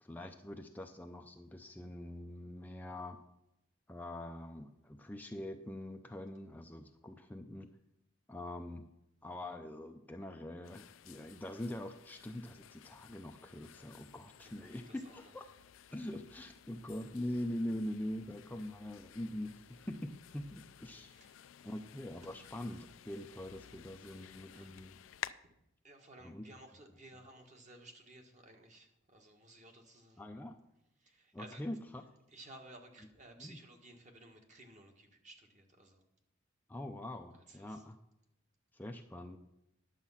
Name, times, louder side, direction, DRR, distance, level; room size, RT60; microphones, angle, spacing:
voice 1, 0.0-3.2 3.9-7.7 8.3-8.9 9.2-15.5 15.9-21.1 21.6-25.0 26.2-26.5 30.2-30.6 31.3-32.0 33.4-33.6 36.7-38.0 38.7-39.4, left 1 dB, 10° left, 4 dB, 0.5 m, -43 dB
sound 1, 10.6-25.3, left 10 dB, 70° left, 0.4 m, -54 dB
voice 2, 14.4-15.3 21.1-21.4 22.2-22.4 24.0-24.7 25.4-25.5 25.8-30.2 31.0-31.6 32.3-36.0 37.3-37.8, right 2 dB, 40° right, 3 dB, 1.5 m, -57 dB
10.5 x 7.3 x 5.7 m, 0.83 s
head